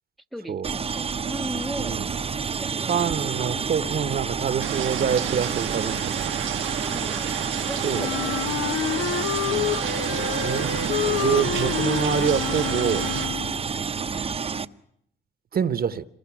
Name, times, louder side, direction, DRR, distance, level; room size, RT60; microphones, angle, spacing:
voice 1, 0.3-2.0 2.5-3.6 6.8-10.4, right 1 dB, ahead, 0.9 m, -39 dB
sound 1, 0.6-14.7, right 5 dB, 30° right, 0.8 m, -29 dB
voice 2, 2.9-6.3 7.8-8.1 9.5-9.7 10.2-10.7 11.0-13.1 15.5-16.0, right 7 dB, 50° right, 1.0 m, -26 dB
sound 2, 4.6-13.3, right 11 dB, 75° right, 1.0 m, -32 dB
Wind instrument woodwind instrument, 7.9-13.7, left 11 dB, 70° left, 0.9 m, -29 dB
26.5 x 21.5 x 6.1 m
cardioid pair, 90°, 20 cm